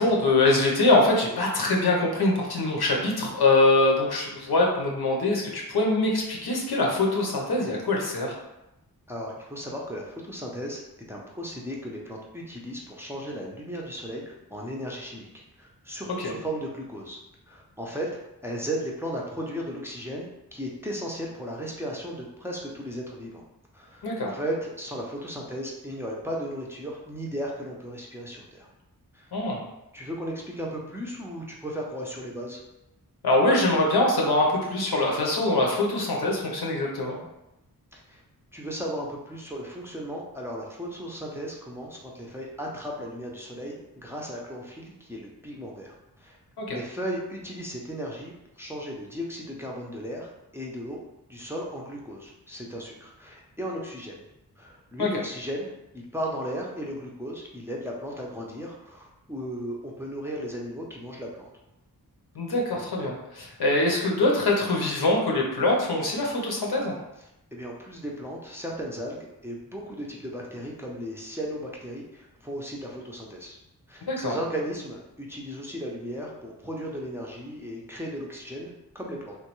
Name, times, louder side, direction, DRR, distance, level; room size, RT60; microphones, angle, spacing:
voice 1, 0.0-8.3 16.2-16.3 24.0-24.3 29.3-29.6 33.2-37.2 46.6-46.8 55.0-55.1 62.3-66.9 74.1-74.4, left 2 dB, 90° left, -2 dB, 0.8 m, -23 dB
voice 2, 9.1-10.8 11.1-15.3 15.6-17.2 17.5-18.1 18.4-23.4 23.7-28.7 29.1-29.3 29.9-32.6 37.9-38.2 38.5-46.4 46.7-51.0 51.3-54.2 54.6-61.5 67.5-73.6 73.9-79.4, equal, 5° right, -3 dB, 0.5 m, -36 dB
3.1 x 2.2 x 3.0 m, 0.92 s
wide cardioid pair, 90°, 37 cm